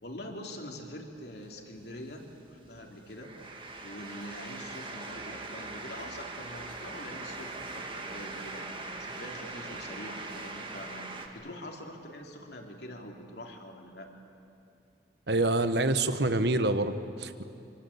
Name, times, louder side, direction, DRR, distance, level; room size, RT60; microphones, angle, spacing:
voice 1, 0.0-3.3 3.8-8.7 9.0-14.1, left 1 dB, 65° left, 2 dB, 3.3 m, -44 dB
sound 1, 1.2-11.3, right 3 dB, 30° right, 2.1 m, -41 dB
voice 2, 15.3-17.4, right 2 dB, 70° right, 10 dB, 1.3 m, -27 dB
27.0 x 25.0 x 8.7 m, 2.6 s
head